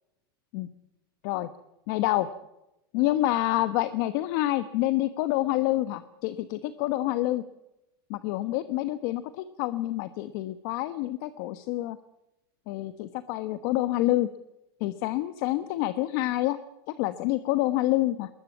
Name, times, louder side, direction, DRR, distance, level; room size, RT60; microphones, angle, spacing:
voice 1, 1.9-2.3 2.9-7.4 8.1-12.0 12.7-14.3 14.8-16.6 16.9-18.3, left 16 dB, 55° left, 12 dB, 1.2 m, -27 dB
21.5 x 19.5 x 7.4 m, 0.91 s
supercardioid pair, 145°, 13 cm